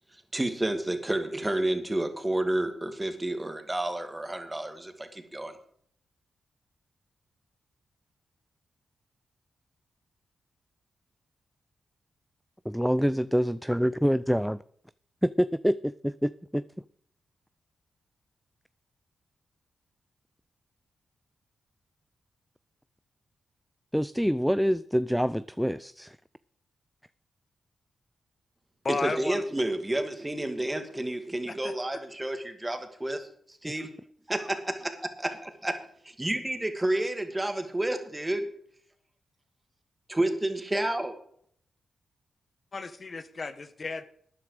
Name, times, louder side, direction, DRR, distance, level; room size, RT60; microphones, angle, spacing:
voice 1, 0.1-5.6 28.9-33.9 34.3-35.8 36.0-38.5 40.1-41.1, right 1 dB, 20° right, 7 dB, 2.2 m, -30 dB
voice 2, 12.6-14.6 15.2-16.6 23.9-26.2 33.6-33.7, equal, ahead, 16 dB, 0.4 m, -26 dB
voice 3, 28.8-29.4 31.6-31.7 42.7-44.1, left 4 dB, 50° left, 11 dB, 1.1 m, -33 dB
13.0 x 9.7 x 4.9 m, 0.62 s
cardioid pair, 55°, 0 cm